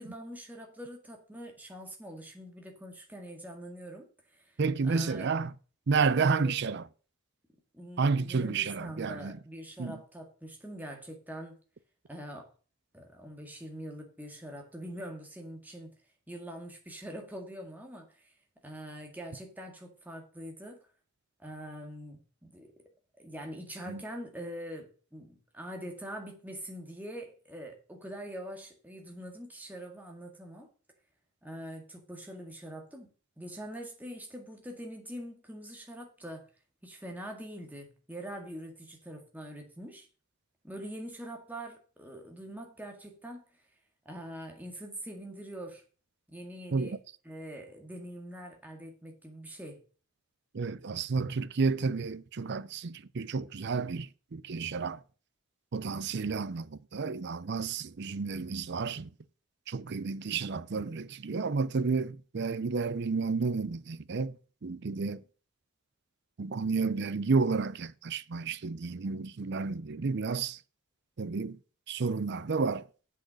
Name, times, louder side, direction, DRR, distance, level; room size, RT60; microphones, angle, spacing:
voice 1, 0.0-4.1 4.3-4.6 4.8-5.3 6.1-6.5 7.7-11.6 12.1-12.5 12.9-15.9 16.3-18.3 18.6-20.8 21.4-22.7 23.2-30.7 31.4-33.1 33.4-36.4 36.8-40.1 40.6-43.4 44.1-45.8 46.3-47.0 47.2-49.8, equal, 10° right, 1.9 m, -44 dB
voice 2, 4.6-5.5 5.9-6.8 8.0-9.4 9.8-10.0 23.9-24.0 46.7-47.0 50.5-55.0 55.7-59.1 59.7-64.4 64.6-65.2 66.4-70.6 71.2-71.6 71.9-72.8, right 4 dB, 55° right, 0.5 m, -31 dB
7.6 x 6.6 x 6.3 m
head